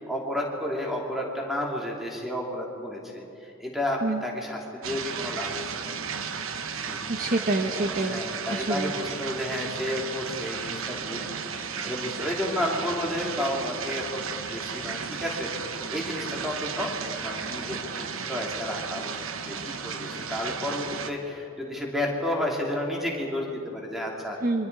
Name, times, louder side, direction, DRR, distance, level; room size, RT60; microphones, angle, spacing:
voice 1, 0.0-5.8 6.8-7.0 7.8-11.3 11.8-15.5 15.9-16.9 17.2-19.1 19.5-24.4, left 1 dB, ahead, -2 dB, 3.0 m, -31 dB
sound 1, 4.8-21.1, right 6 dB, 85° right, 1.1 m, -34 dB
voice 2, 7.1-8.2 8.5-8.9 24.4-24.7, right 2 dB, 40° right, 4 dB, 1.0 m, -27 dB
27.5 x 24.5 x 4.8 m, 2.8 s
head